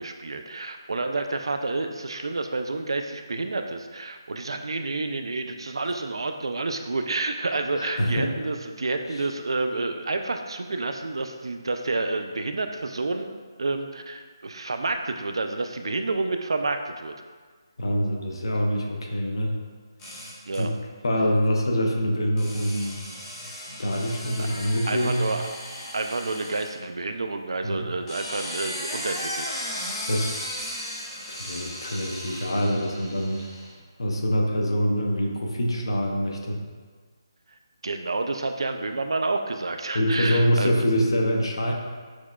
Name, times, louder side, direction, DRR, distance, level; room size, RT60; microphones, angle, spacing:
voice 1, 0.0-17.1 20.5-20.7 24.4-24.5 24.9-25.4 25.9-29.5 37.8-40.8, right 3 dB, 85° right, 6 dB, 0.3 m, -29 dB
voice 2, 7.8-8.3 17.8-19.6 20.6-20.7 21.0-23.0 23.8-25.2 27.6-27.9 30.1-30.3 31.3-33.4 34.0-36.6 39.9-41.7, equal, 75° left, 0 dB, 0.7 m, -25 dB
sound 1, 20.0-20.6 22.4-26.7 27.9-33.7, equal, 10° left, 0.5 m, -36 dB
6.0 x 2.2 x 2.4 m, 1.5 s
hypercardioid pair, 175°, 3 cm